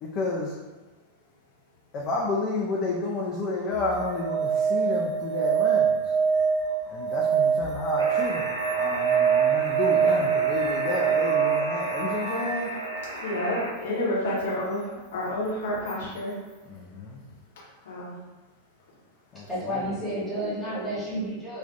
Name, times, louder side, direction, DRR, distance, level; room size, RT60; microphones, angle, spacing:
voice 1, 0.0-0.6 1.9-6.1 6.9-12.7 16.7-17.2 19.3-20.0, left 3 dB, 35° left, -3 dB, 0.3 m, -31 dB
sound 1, 3.7-13.5 15.9-16.0, right 7 dB, 30° right, 0.6 m, -25 dB
Alarm, 8.0-13.7, equal, 85° right, 0.4 m, -34 dB
voice 2, 13.2-16.4 17.8-18.2, left 1 dB, 60° left, -6 dB, 0.7 m, -29 dB
voice 3, 19.5-21.6, equal, ahead, -10 dB, 0.9 m, -31 dB
2.2 x 2.1 x 2.7 m, 1.2 s
figure-of-eight pair, 90°, 0 cm